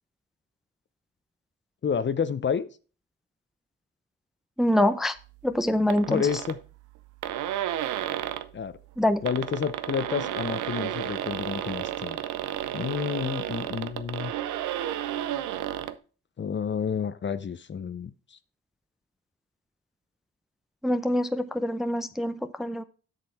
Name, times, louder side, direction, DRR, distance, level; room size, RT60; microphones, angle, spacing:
voice 1, 1.8-2.7 6.1-6.6 8.5-8.8 9.2-12.2 12.7-14.3 16.4-18.4, left 7 dB, 40° left, 15 dB, 0.7 m, -30 dB
voice 2, 4.6-5.1 5.4-6.3 9.0-9.2 20.8-22.8, left 1 dB, ahead, 11 dB, 0.6 m, -25 dB
sound 1, 5.9-6.6 7.0-7.1 7.2-8.5 9.1-16.0, right 12 dB, 90° right, 0.7 m, -32 dB
7.8 x 6.7 x 4.3 m, 0.36 s
cardioid pair, 85°, 29 cm